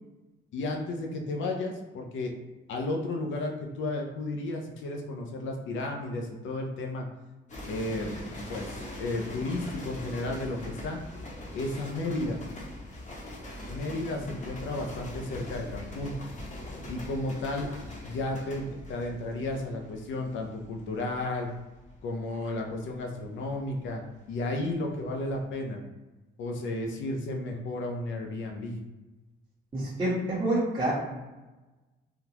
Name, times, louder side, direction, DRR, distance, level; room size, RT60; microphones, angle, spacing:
voice 1, 0.5-2.3 2.7-7.1 7.6-8.1 8.5-11.0 11.5-12.4 13.7-16.1 16.9-17.7 18.0-21.5 22.0-25.8 26.4-28.8, left 2 dB, 75° left, 2 dB, 0.6 m, -33 dB
sound 1, 7.5-24.7 25.0-25.4, left 1 dB, 40° left, 0.9 m, -42 dB
voice 2, 29.7-30.9, right 1 dB, 20° right, -8 dB, 1.1 m, -27 dB
3.6 x 2.3 x 2.9 m, 1.1 s
cardioid pair, 90°, 20 cm